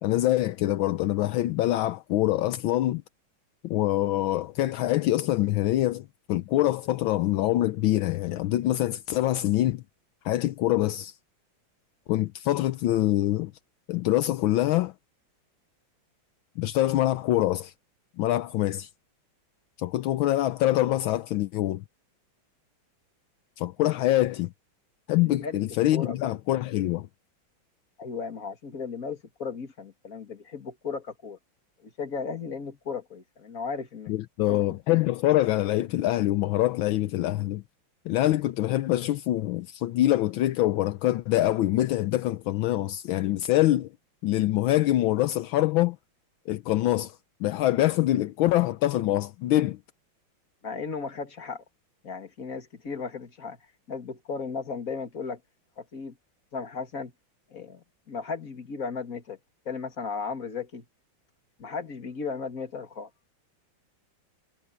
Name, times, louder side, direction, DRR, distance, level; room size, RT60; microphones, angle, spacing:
voice 1, 0.0-3.0 3.6-9.8 10.2-11.2 12.1-13.5 13.9-14.9 16.6-17.7 18.2-18.9 19.8-21.8 23.6-24.5 25.1-27.1 34.1-37.6 38.1-43.9 44.2-46.0 46.5-49.8, left 15 dB, 80° left, 1.5 m, -25 dB
voice 2, 25.2-25.6 25.9-26.4 28.0-31.4 31.8-34.1 34.5-34.6 50.6-51.6 52.0-53.6 53.9-55.4 55.8-56.2 56.5-57.1 57.5-59.4 59.7-60.9 61.6-63.1, left 5 dB, 45° left, 2.6 m, -35 dB
omnidirectional pair, 2.2 m